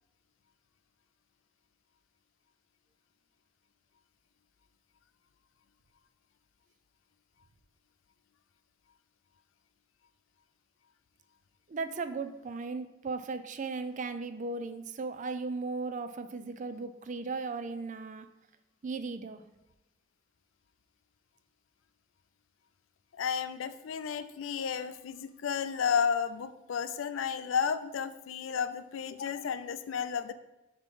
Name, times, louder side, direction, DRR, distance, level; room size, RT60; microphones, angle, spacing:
voice 1, 11.7-18.3 18.8-19.4, right 4 dB, 40° right, 10 dB, 0.4 m, -36 dB
voice 2, 23.2-30.3, left 7 dB, 85° left, 12 dB, 0.4 m, -32 dB
6.9 x 2.9 x 5.3 m, 0.97 s
head